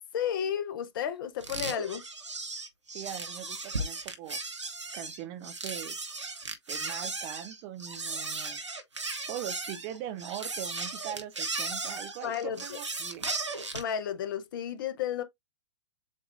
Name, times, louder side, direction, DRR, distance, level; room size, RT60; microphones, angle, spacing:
voice 1, 0.1-2.0 12.2-12.8 13.7-15.2, left 9 dB, 50° left, 0.8 m, -32 dB
sound 1, 1.4-13.9, right 3 dB, 80° right, 1.0 m, -36 dB
voice 2, 2.9-4.4 4.9-6.0 6.7-8.6 9.3-13.3, right 11 dB, 30° right, 0.5 m, -41 dB
7.2 x 2.5 x 2.6 m
figure-of-eight pair, 110°, 15 cm